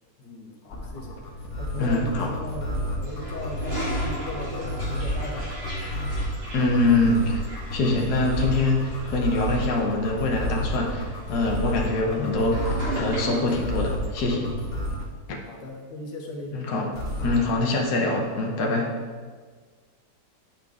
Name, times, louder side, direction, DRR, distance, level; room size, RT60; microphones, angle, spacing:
voice 1, 0.2-1.2 1.6-5.6 14.8-15.0 15.5-16.6, left 1 dB, 90° left, 1 dB, 1.6 m, -37 dB
sound 1, 0.7-15.1 16.9-17.5, left 1 dB, 45° left, 1.6 m, -30 dB
voice 2, 1.8-2.3 6.5-7.4 7.7-14.5 15.3-15.4 16.5-16.9 17.2-18.9, left 2 dB, 70° left, 0 dB, 1.4 m, -24 dB
Toilet flush, 3.0-13.7, right 1 dB, 35° right, 2.6 m, -38 dB
9.1 x 5.7 x 3.5 m, 1.5 s
omnidirectional pair, 1.8 m